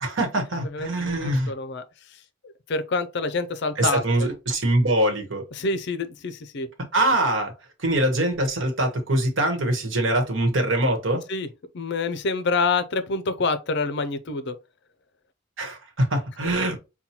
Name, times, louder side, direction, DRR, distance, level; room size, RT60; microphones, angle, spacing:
voice 1, 0.0-1.5 3.8-5.4 6.9-7.5 7.8-11.2 15.6-16.8, right 1 dB, 70° right, 1.1 m, -23 dB
voice 2, 0.6-1.8 2.1-4.3 5.5-6.7 11.3-11.5 11.7-14.6, left 3 dB, 60° left, 0.5 m, -27 dB
5.6 x 2.2 x 2.8 m
head